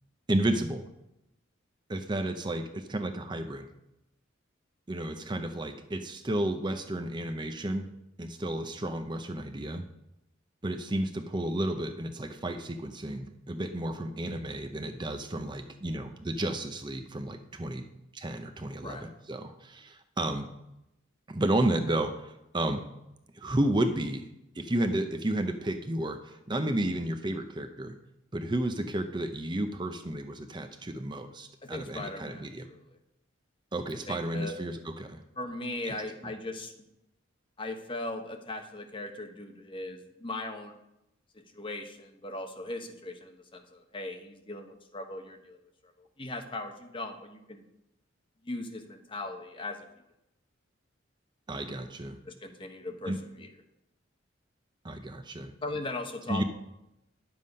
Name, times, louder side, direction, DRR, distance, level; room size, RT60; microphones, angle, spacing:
voice 1, 0.3-0.8 1.9-3.7 4.9-7.8 8.2-9.8 10.6-17.9 18.1-20.5 21.3-22.8 23.4-24.3 24.6-27.9 28.3-32.7 33.7-35.2 35.8-35.9 51.5-52.2 53.1-53.2 54.8-55.5 56.3-56.4, right 1 dB, 25° right, 7 dB, 0.6 m, -32 dB
voice 2, 31.7-33.0 34.1-34.6 35.4-36.7 37.6-40.7 41.5-45.6 45.8-47.6 48.4-49.9 52.2-53.5 55.6-56.4, left 2 dB, 25° left, 5 dB, 1.0 m, -39 dB
10.0 x 7.5 x 5.3 m, 0.88 s
head